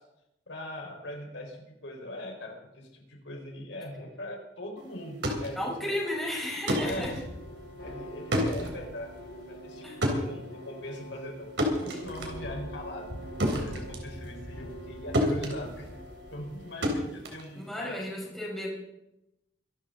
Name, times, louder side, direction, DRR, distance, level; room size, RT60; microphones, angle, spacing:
voice 1, 0.5-6.0 6.8-7.1 7.8-13.1 13.6-15.9 16.3-17.9, left 1 dB, 85° left, 1 dB, 4.7 m, -41 dB
sound 1, 5.0-14.9 15.1-18.1, equal, 75° right, 3.6 m, -32 dB
voice 2, 5.6-7.1 9.8-10.0 17.5-18.7, left 1 dB, ahead, -3 dB, 4.8 m, -33 dB
sound 2, 6.7-16.9, equal, 60° left, 4.2 m, -43 dB
24.5 x 12.5 x 3.9 m, 0.89 s
head